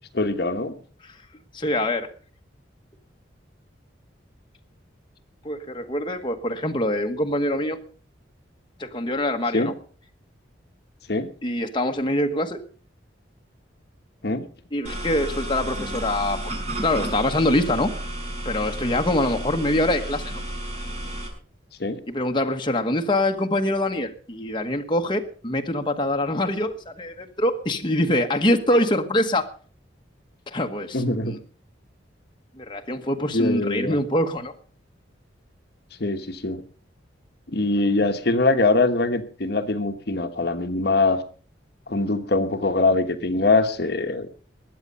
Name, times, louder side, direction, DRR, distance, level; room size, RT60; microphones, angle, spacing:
voice 1, 0.1-0.8 9.5-9.7 11.1-11.3 14.2-14.4 21.8-22.0 30.9-31.3 33.3-34.0 36.0-36.6 37.5-41.2 41.9-44.3, left 2 dB, 55° left, 8 dB, 1.2 m, -23 dB
voice 2, 1.5-2.1 5.4-7.8 8.8-9.7 11.4-12.6 14.7-16.5 16.8-17.9 18.4-20.4 22.1-29.5 30.5-31.4 32.6-34.5, left 1 dB, 25° left, 3 dB, 1.3 m, -24 dB
sound 1, 14.8-21.3, right 1 dB, 35° right, 6.1 m, -32 dB
21.0 x 8.2 x 5.5 m, 0.42 s
head